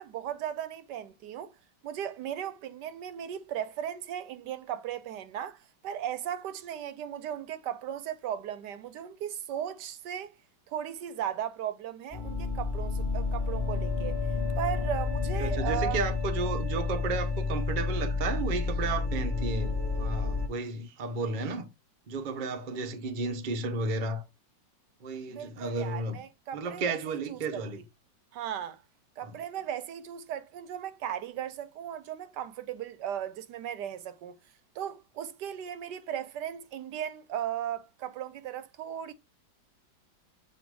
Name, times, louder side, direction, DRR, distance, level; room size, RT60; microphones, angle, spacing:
voice 1, 0.0-1.5 1.8-10.3 10.7-14.2 14.6-16.0 25.3-27.6 28.3-28.8 29.2-34.3 34.7-39.1, right 10 dB, 75° right, 1.2 m, -36 dB
sound 1, 12.1-20.5, left 4 dB, 15° left, 0.9 m, -30 dB
voice 2, 15.4-21.7 22.1-24.2 25.0-26.2 26.5-27.8 29.2-29.3, right 3 dB, 55° right, 0.5 m, -33 dB
7.7 x 2.7 x 4.6 m
omnidirectional pair, 2.0 m